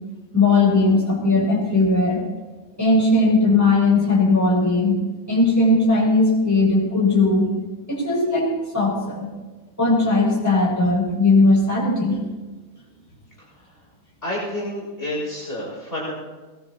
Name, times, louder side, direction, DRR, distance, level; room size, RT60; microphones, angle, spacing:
voice 1, 0.3-2.2 2.8-5.0 5.3-7.5 7.9-9.3 9.8-12.2, left 2 dB, 5° left, -7 dB, 6.5 m, -18 dB
voice 2, 14.2-16.1, left 1 dB, 25° left, -5 dB, 5.8 m, -29 dB
22.0 x 20.0 x 2.9 m, 1.2 s
omnidirectional pair, 2.4 m